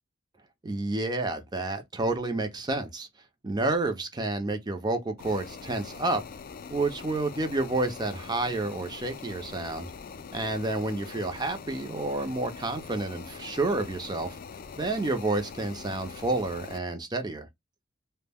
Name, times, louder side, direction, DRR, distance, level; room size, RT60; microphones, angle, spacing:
voice 1, 0.6-3.1 3.4-6.2 6.7-9.9 10.3-14.4 14.8-17.5, right 2 dB, 20° right, 0.5 m, -29 dB
sound 1, 5.2-16.8, left 5 dB, 45° left, 0.3 m, -43 dB
2.1 x 2.1 x 3.3 m
head